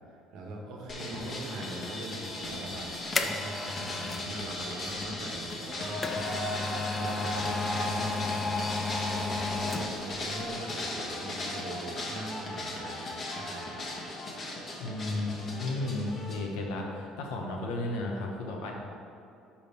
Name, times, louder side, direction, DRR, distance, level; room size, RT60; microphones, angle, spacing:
voice 1, 0.3-2.9 3.2-6.5 7.0-13.9, right 1 dB, 75° right, 0 dB, 1.2 m, -42 dB
sound 1, 0.9-16.4, left 1 dB, 40° left, 1.3 m, -36 dB
sound 2, 2.5-4.3 5.5-10.2 10.5-10.6, left 3 dB, 25° left, 0.5 m, -33 dB
voice 2, 14.8-18.7, left 2 dB, 85° left, 0 dB, 1.0 m, -33 dB
5.2 x 4.8 x 5.4 m, 2.6 s
supercardioid pair, 95°, 0 cm